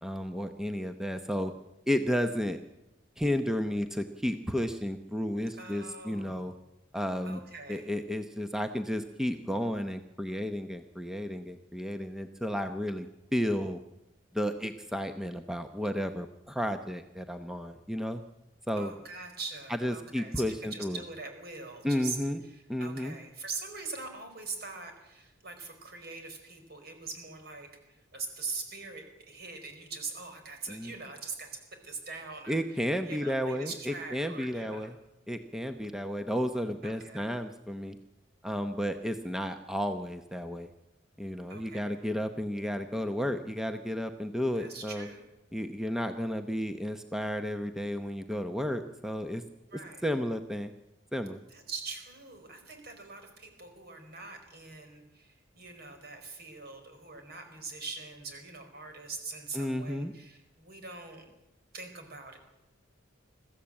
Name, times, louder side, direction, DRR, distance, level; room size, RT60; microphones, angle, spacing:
voice 1, 0.0-1.5 1.9-2.6 3.2-6.5 6.9-7.4 7.7-13.1 13.3-13.8 14.3-18.2 18.7-18.9 19.7-21.0 21.8-22.4 22.7-23.2 30.7-30.9 32.5-34.9 35.3-38.0 38.4-40.7 41.2-45.1 45.5-49.4 50.0-50.7 51.1-51.4 59.5-60.1, equal, 5° right, 7 dB, 0.8 m, -32 dB
voice 2, 5.6-6.6 7.2-7.9 18.7-22.2 22.5-31.5 31.8-32.6 33.1-34.9 36.8-37.3 41.5-41.9 44.6-45.3 49.7-50.1 51.5-61.2 61.7-62.4, right 4 dB, 55° right, 5 dB, 4.7 m, -43 dB
21.5 x 14.5 x 8.8 m, 0.95 s
head